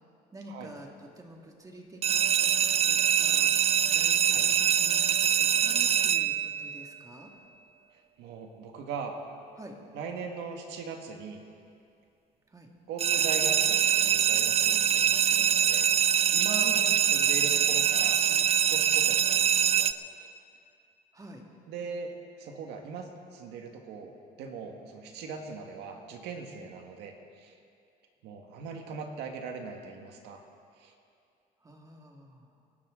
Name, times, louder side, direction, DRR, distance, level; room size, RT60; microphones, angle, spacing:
voice 1, 0.3-3.5 3.9-7.3 9.6-9.8 12.5-12.7 16.6-17.0 21.1-21.4 31.6-32.5, right 1 dB, 20° right, 1 dB, 2.1 m, -48 dB
sound 1, 2.0-6.9 13.0-19.9, right 9 dB, 35° right, 0.4 m, -24 dB
voice 2, 8.2-9.2 9.9-11.4 12.9-15.9 16.3-18.4 18.7-19.9 20.2-20.3 21.7-27.5 28.2-30.4 30.8-30.9, right 4 dB, 85° right, 3 dB, 1.8 m, -40 dB
26.0 x 12.0 x 3.9 m, 2.4 s
cardioid pair, 110°, 17 cm